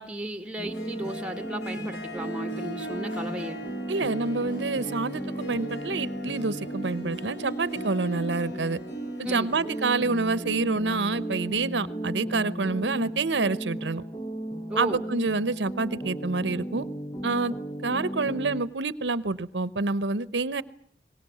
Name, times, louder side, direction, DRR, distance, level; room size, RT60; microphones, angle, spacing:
voice 1, 0.0-3.6 9.3-9.6 14.7-15.1, right 1 dB, 5° right, 8 dB, 1.8 m, -35 dB
Harp, 0.6-11.8, right 2 dB, 85° left, 4.0 m, -41 dB
sound 1, 0.6-18.6, right 1 dB, 20° left, 1.4 m, -35 dB
voice 2, 3.9-8.8 9.2-14.0 14.8-16.9 17.2-17.5 17.8-20.6, right 3 dB, 90° right, 17 dB, 0.9 m, -27 dB
23.5 x 19.5 x 9.3 m, 0.64 s
head